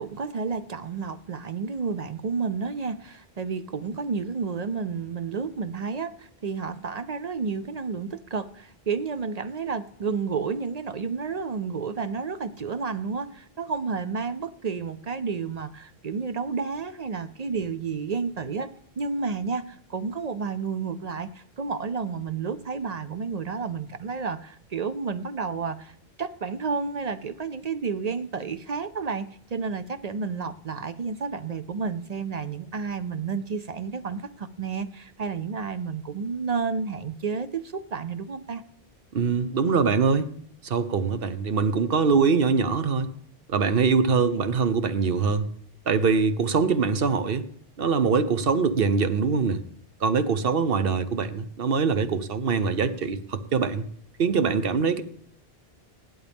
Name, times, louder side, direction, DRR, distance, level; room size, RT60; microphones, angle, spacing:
voice 1, 0.0-38.6, right 5 dB, 50° right, 12 dB, 0.6 m, -31 dB
voice 2, 39.1-40.3 40.6-43.1 43.5-45.5 45.9-47.4 47.8-49.6 50.0-53.9 54.2-55.0, right 5 dB, 65° right, 12 dB, 1.0 m, -23 dB
16.5 x 11.0 x 3.5 m, 0.63 s
omnidirectional pair, 1.0 m